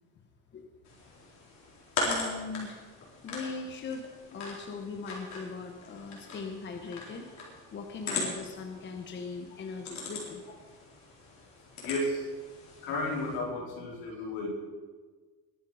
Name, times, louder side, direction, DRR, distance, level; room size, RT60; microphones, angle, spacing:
sound 1, 0.8-13.4, left 3 dB, 45° left, 4.1 m, -40 dB
voice 1, 2.0-2.9 3.2-7.3 7.7-10.4, left 4 dB, 30° left, 4 dB, 1.1 m, -40 dB
voice 2, 11.8-12.3 12.8-14.5, left 1 dB, 75° left, -2 dB, 4.5 m, -33 dB
21.0 x 8.4 x 5.0 m, 1.5 s
cardioid pair, 140°, 37 cm